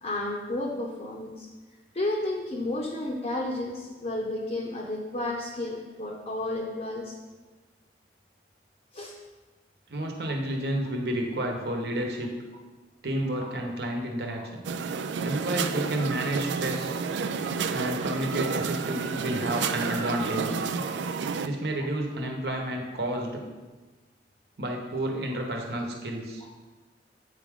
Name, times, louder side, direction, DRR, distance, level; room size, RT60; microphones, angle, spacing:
voice 1, 0.0-1.5 1.9-7.1 8.9-9.1 13.4-13.5 14.4-14.5 26.4-26.5, left 1 dB, 35° left, -2 dB, 0.7 m, -32 dB
voice 2, 9.9-12.3 13.0-14.6 15.2-17.0 17.7-20.7 21.4-23.4 24.6-26.4, right 1 dB, 60° right, 2 dB, 1.0 m, -31 dB
sound 1, 14.6-21.5, right 5 dB, 85° right, 0.4 m, -30 dB
8.1 x 4.8 x 3.6 m, 1.3 s
head